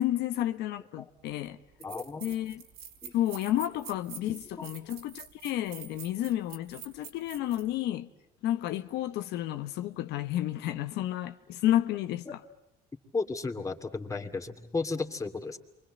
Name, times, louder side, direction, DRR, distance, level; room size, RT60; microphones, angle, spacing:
voice 1, 0.0-1.6 2.2-2.6 3.1-8.1 8.4-12.3, left 13 dB, 85° left, 1.1 m, -31 dB
sound 1, 1.2-1.3 1.8-7.7, right 8 dB, 85° right, 4.7 m, -46 dB
voice 2, 1.8-2.2 3.0-3.1 4.3-4.7 12.3-12.4 13.1-15.6, left 3 dB, 20° left, 2.6 m, -34 dB
28.5 x 24.0 x 7.8 m
cardioid pair, 110°, 17 cm